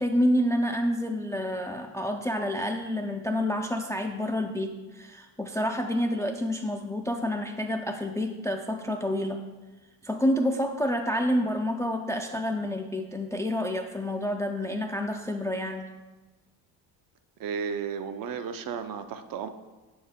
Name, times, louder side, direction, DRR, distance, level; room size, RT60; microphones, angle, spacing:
voice 1, 0.0-9.4 10.0-15.9, equal, 10° left, 4 dB, 0.4 m, -28 dB
voice 2, 17.4-19.5, right 6 dB, 50° right, 8 dB, 0.6 m, -33 dB
6.7 x 4.4 x 3.6 m, 1.2 s
hypercardioid pair, 55°, 44 cm